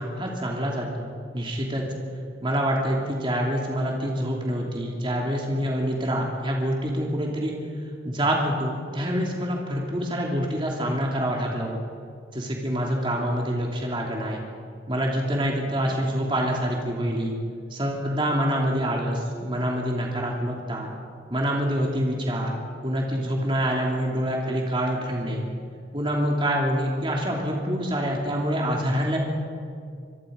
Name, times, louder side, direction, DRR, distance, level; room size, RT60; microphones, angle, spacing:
voice 1, 0.0-1.9 2.4-7.5 8.0-11.8 12.3-14.4 14.9-17.4 17.7-20.9 21.3-22.5 22.8-25.4 25.9-29.2, equal, 30° right, -1 dB, 3.0 m, -26 dB
26.0 x 22.0 x 5.3 m, 2.2 s
head